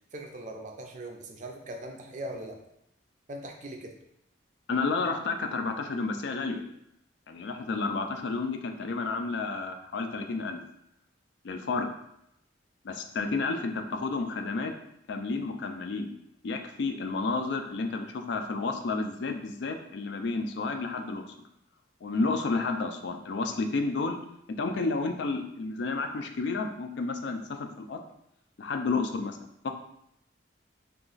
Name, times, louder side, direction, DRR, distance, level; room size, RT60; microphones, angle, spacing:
voice 1, 0.1-2.6 3.3-3.9, right 1 dB, 40° right, 3 dB, 0.4 m, -40 dB
voice 2, 4.7-6.6 7.3-10.6 11.4-11.9 12.8-14.7 15.1-16.1 16.4-21.3 22.0-24.2 24.6-28.0 28.6-29.4 29.6-29.7, left 3 dB, 60° left, 5 dB, 0.4 m, -31 dB
2.9 x 2.4 x 3.8 m, 0.78 s
head